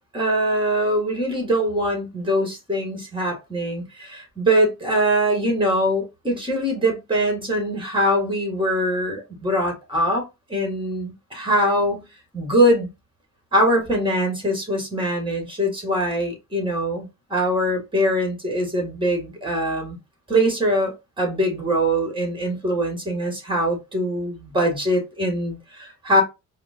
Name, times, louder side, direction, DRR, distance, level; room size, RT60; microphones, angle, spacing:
voice 1, 0.1-10.2 10.5-12.1 12.3-12.9 13.5-20.0 20.3-26.2, equal, 15° right, 1.8 m, -22 dB
4.7 x 2.2 x 2.5 m
cardioid pair, 90°, 30 cm